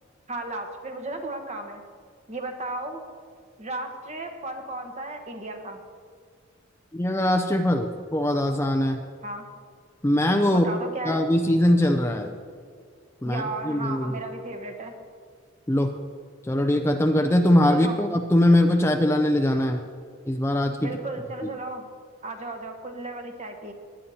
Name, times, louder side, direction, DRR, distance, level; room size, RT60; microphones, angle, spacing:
voice 1, 0.3-1.8 2.3-3.0 3.6-5.8 9.2-9.5 10.5-11.3 13.2-14.9 17.7-18.0 20.8-21.9 22.2-23.7, right 2 dB, 35° right, 4 dB, 1.2 m, -34 dB
voice 2, 6.9-9.0 10.0-10.6 11.1-12.3 13.2-14.2 15.7-15.9 16.4-19.8 20.3-20.9, left 1 dB, 15° left, 5 dB, 0.5 m, -21 dB
19.0 x 10.0 x 2.8 m, 2.1 s
head